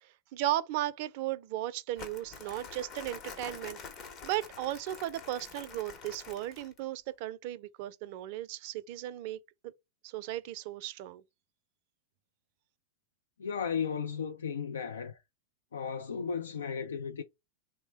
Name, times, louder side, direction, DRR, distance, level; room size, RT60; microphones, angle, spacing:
voice 1, 0.0-3.8 4.2-9.7 10.0-11.2, right 14 dB, 55° right, 0.4 m, -36 dB
Crumpling crinkling, 2.0-6.8, left 5 dB, 40° left, 0.8 m, -47 dB
voice 2, 13.4-15.2 15.7-17.2, left 6 dB, 85° left, 0.4 m, -35 dB
3.2 x 2.1 x 3.2 m
hypercardioid pair, 110°, 0 cm